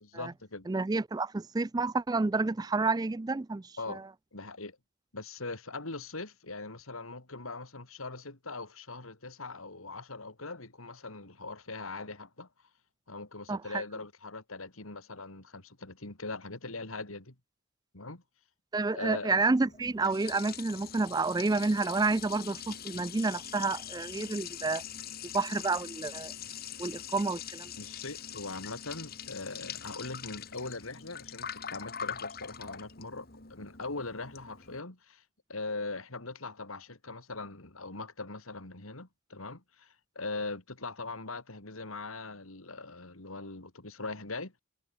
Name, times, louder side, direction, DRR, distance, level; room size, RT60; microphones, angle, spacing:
voice 1, 0.0-0.7 3.8-4.0 4.3-4.8 5.1-12.5 13.1-17.3 17.9-18.2 18.9-19.3 27.8-35.2 35.5-44.5, left 3 dB, 90° left, 3.4 m, -41 dB
voice 2, 0.7-3.6 3.9-4.0 13.5-13.8 18.7-24.8 25.3-26.3 26.8-27.7, right 3 dB, 20° right, 0.4 m, -29 dB
Liquid, 19.6-34.8, left 8 dB, 45° left, 2.9 m, -43 dB
head